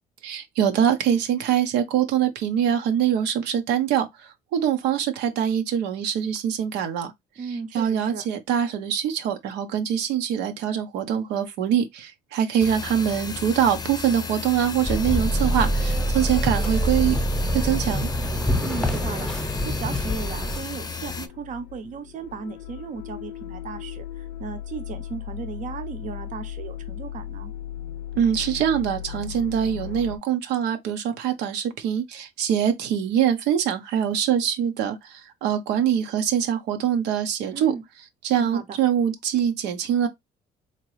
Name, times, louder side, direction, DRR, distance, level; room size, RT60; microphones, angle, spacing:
voice 1, 0.2-7.1 7.7-17.2 17.4-18.1 28.2-37.7 38.2-40.1, right 9 dB, 85° right, 0.8 m, -24 dB
voice 2, 7.4-8.3 18.6-27.5 37.5-37.8 38.4-38.8, right 5 dB, 50° right, 0.8 m, -36 dB
sound 1, 12.6-21.3, left 5 dB, 25° left, 0.5 m, -34 dB
sound 2, 14.9-20.6, equal, 5° left, 0.9 m, -25 dB
sound 3, 21.0-30.2, left 11 dB, 80° left, 0.5 m, -37 dB
3.7 x 2.9 x 3.0 m
cardioid pair, 110°, 17 cm